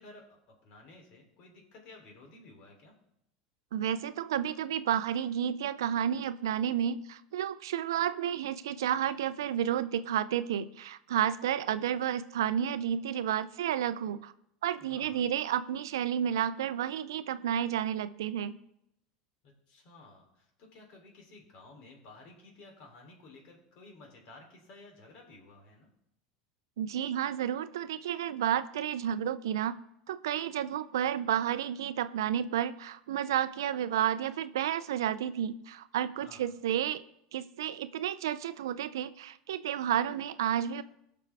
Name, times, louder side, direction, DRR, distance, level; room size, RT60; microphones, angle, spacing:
voice 1, 0.0-2.9 14.8-15.3 19.4-25.9 36.2-36.5, left 2 dB, 55° left, 2 dB, 3.2 m, -54 dB
voice 2, 3.7-14.3 14.6-18.5 26.8-29.8 30.1-37.0 37.3-40.8, right 10 dB, 85° right, 14 dB, 0.5 m, -31 dB
17.0 x 6.0 x 3.5 m, 0.76 s
hypercardioid pair, 100°, 2 cm